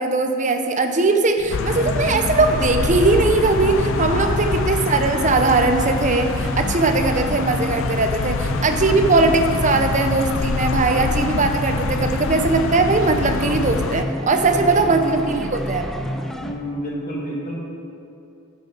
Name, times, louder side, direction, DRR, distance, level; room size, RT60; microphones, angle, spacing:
voice 1, 0.0-16.0, right 3 dB, 35° right, 6 dB, 0.7 m, -20 dB
sound 1, 1.4-16.4, equal, 20° left, 1.2 m, -35 dB
sound 2, 1.5-14.0, left 4 dB, 65° left, 0.4 m, -25 dB
sound 3, 1.7-16.6, equal, ahead, 0.4 m, -30 dB
voice 2, 4.0-4.4 8.4-8.9 14.5-15.6 16.4-17.6, equal, 40° left, -3 dB, 1.7 m, -31 dB
10.0 x 5.6 x 5.9 m, 2.7 s
head